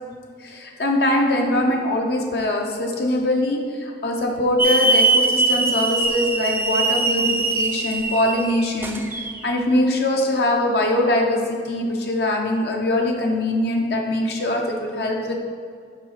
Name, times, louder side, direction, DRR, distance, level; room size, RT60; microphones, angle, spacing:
voice 1, 0.4-15.4, left 1 dB, 60° left, 1 dB, 0.7 m, -22 dB
Hiss / Alarm, 4.6-9.4, right 3 dB, 10° right, 0.3 m, -21 dB
5.3 x 4.1 x 5.6 m, 2.2 s
head